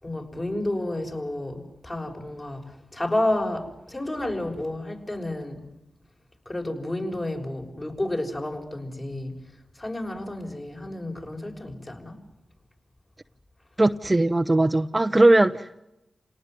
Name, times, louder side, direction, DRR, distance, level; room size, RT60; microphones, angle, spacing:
voice 1, 0.0-5.6 6.4-9.3 9.7-12.2, left 1 dB, 30° left, 6.4 m, -30 dB
voice 2, 13.8-15.8, right 2 dB, 25° right, 0.9 m, -19 dB
28.5 x 18.5 x 9.3 m
cardioid pair, 45°, 0 cm